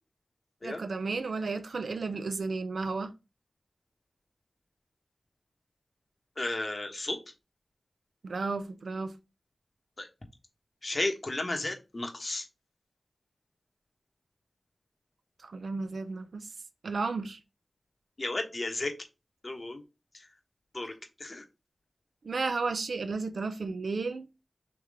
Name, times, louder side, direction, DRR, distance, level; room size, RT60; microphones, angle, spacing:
voice 1, 0.6-3.1 8.2-9.2 15.4-16.5 16.8-17.4 22.2-24.3, right 4 dB, 80° right, 0.5 m, -33 dB
voice 2, 6.4-7.2 10.0-10.1 10.8-12.4 18.2-18.9 19.4-19.8 20.7-20.9 21.2-21.4, left 2 dB, 50° left, 1.1 m, -33 dB
3.5 x 3.1 x 4.8 m
cardioid pair, 40°, 0 cm